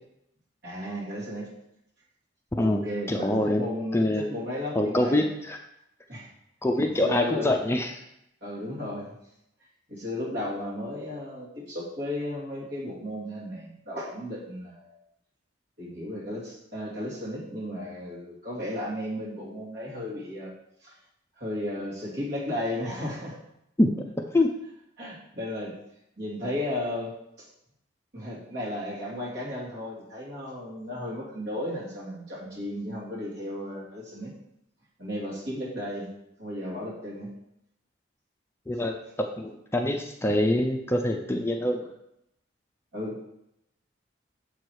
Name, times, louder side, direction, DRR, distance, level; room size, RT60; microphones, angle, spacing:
voice 1, 0.6-1.5 2.6-5.2 6.1-6.3 6.9-7.6 8.4-9.1 9.9-14.9 15.8-20.5 20.8-21.0 21.4-23.4 25.0-25.7 26.2-27.1 27.4-27.5 28.1-34.3 35.0-36.1 36.4-37.3 42.9-43.2, left 1 dB, 60° right, -5 dB, 2.5 m, -34 dB
voice 2, 2.6-4.2 4.8-5.6 6.6-7.9 23.8-23.9 24.3-24.5 38.7-41.9, left 1 dB, 15° left, 3 dB, 0.4 m, -25 dB
6.9 x 4.6 x 4.7 m, 0.82 s
head